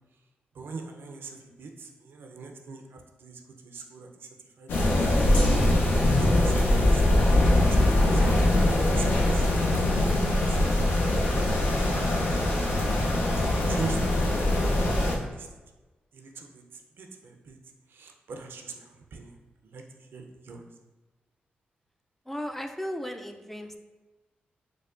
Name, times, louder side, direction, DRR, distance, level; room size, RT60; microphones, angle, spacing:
voice 1, 0.5-4.3 4.6-4.7 5.0-5.4 6.0-8.6 8.9-9.5 10.3-12.8 13.5-15.5 16.1-17.6 17.9-19.3 19.6-19.8 20.1-20.6, right 4 dB, 75° right, 3 dB, 0.4 m, -42 dB
sound 1, 4.7-15.1, left 1 dB, 85° left, 0.5 m, -22 dB
Gong, 5.3-11.2, left 1 dB, 35° left, 1.0 m, -45 dB
voice 2, 22.3-23.8, equal, 5° left, 5 dB, 0.3 m, -35 dB
4.5 x 2.1 x 2.4 m, 1.2 s
cardioid pair, 60°, 4 cm